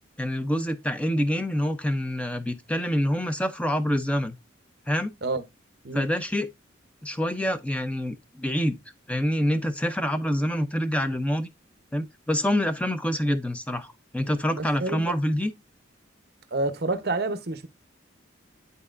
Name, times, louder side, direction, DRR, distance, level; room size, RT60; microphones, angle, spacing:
voice 1, 0.2-4.4 4.9-5.1 5.9-6.5 7.0-8.8 9.1-11.5 11.9-15.5, equal, 5° left, 0.6 m, -26 dB
voice 2, 14.5-15.0 16.5-17.7, right 2 dB, 50° right, 0.9 m, -28 dB
11.0 x 4.0 x 2.5 m
head